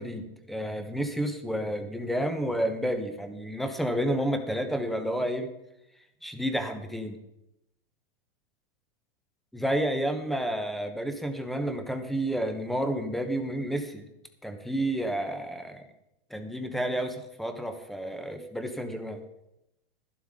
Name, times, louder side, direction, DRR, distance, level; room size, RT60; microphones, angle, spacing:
voice 1, 0.0-5.5 6.2-7.2 9.5-14.0 14.4-15.9 16.3-19.2, right 1 dB, ahead, 6 dB, 0.9 m, -30 dB
11.5 x 11.5 x 3.7 m, 0.87 s
supercardioid pair, 145°, 29 cm